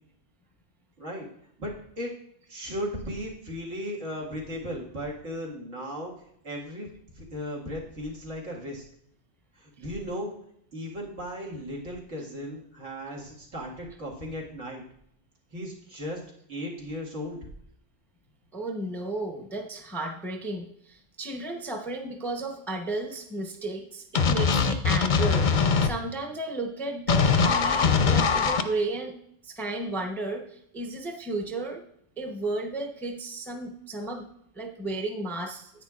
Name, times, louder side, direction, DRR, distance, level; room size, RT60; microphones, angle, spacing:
voice 1, 1.0-1.3 1.6-2.2 2.5-8.8 9.6-10.3 10.7-14.8 15.5-16.2 16.5-17.5, equal, 80° right, -3 dB, 2.2 m, -36 dB
voice 2, 18.5-29.2 29.4-31.8 32.2-34.3 34.5-35.7, right 2 dB, ahead, 3 dB, 0.7 m, -33 dB
sound 1, 24.1-25.9 27.1-28.6, left 5 dB, 50° left, 0.7 m, -22 dB
10.5 x 9.0 x 2.4 m, 0.71 s
omnidirectional pair, 1.2 m